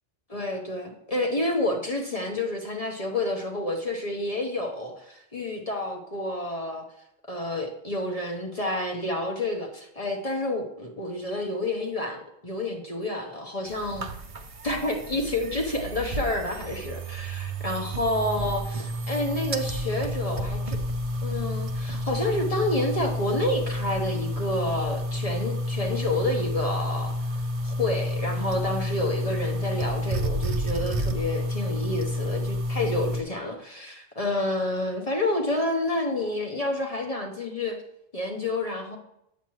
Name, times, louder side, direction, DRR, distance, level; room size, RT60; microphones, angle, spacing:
voice 1, 0.3-6.8 7.3-14.1 14.6-20.8 21.2-27.1 27.6-37.8 38.1-39.0, left 1 dB, 35° left, 1 dB, 1.0 m, -29 dB
sound 1, 13.7-33.2, equal, 40° right, 0.6 m, -30 dB
8.9 x 7.2 x 3.1 m, 0.81 s
omnidirectional pair, 1.1 m